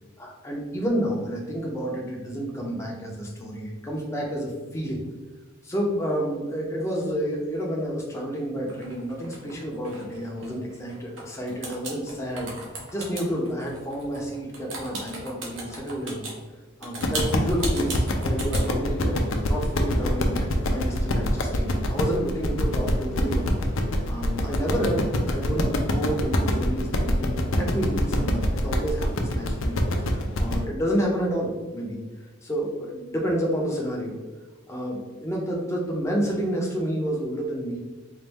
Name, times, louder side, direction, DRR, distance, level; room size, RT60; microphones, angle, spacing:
voice 1, 0.4-5.0 5.6-12.6 12.9-16.3 16.8-19.2 19.5-23.5 24.1-29.8 30.0-32.0 32.4-34.2 34.7-37.8, equal, 15° left, -2 dB, 0.7 m, -29 dB
sound 1, 8.7-11.2 11.5-16.3 16.8-18.7, right 2 dB, 65° right, 1.0 m, -36 dB
sound 2, 17.0-30.6, left 1 dB, 75° left, 0.5 m, -25 dB
4.0 x 2.6 x 3.4 m, 1.3 s
head